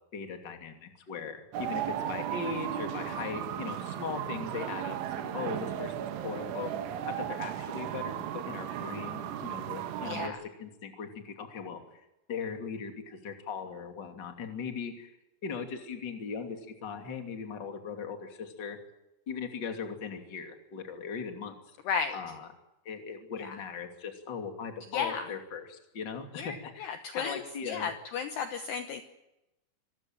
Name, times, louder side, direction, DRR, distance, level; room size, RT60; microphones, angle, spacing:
voice 1, 0.1-5.9 6.2-6.7 7.2-11.8 12.3-15.1 15.4-18.8 19.3-21.5 22.1-22.5 22.8-27.9, left 6 dB, 30° left, 5 dB, 2.4 m, -39 dB
sound 1, 1.5-10.3, right 10 dB, 75° right, 3.7 m, -35 dB
voice 2, 10.0-10.4 21.9-22.2 23.4-23.6 24.9-25.3 26.4-29.0, left 6 dB, 70° left, 7 dB, 2.8 m, -34 dB
25.5 x 15.5 x 9.1 m, 0.93 s
omnidirectional pair, 5.9 m